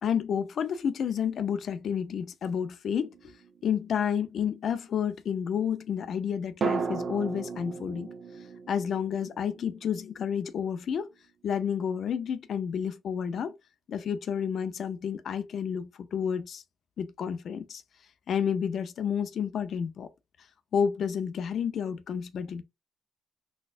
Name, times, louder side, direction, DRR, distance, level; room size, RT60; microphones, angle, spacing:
voice 1, 0.0-3.1 3.6-8.1 8.7-11.1 11.4-13.5 13.9-16.6 17.0-17.8 18.3-20.1 20.7-22.6, left 7 dB, 60° left, 0.4 m, -30 dB
sound 1, 3.0-4.2 6.6-10.6 10.8-10.9, right 5 dB, 45° right, 0.7 m, -36 dB
4.1 x 2.3 x 2.4 m
cardioid pair, 90°, 0 cm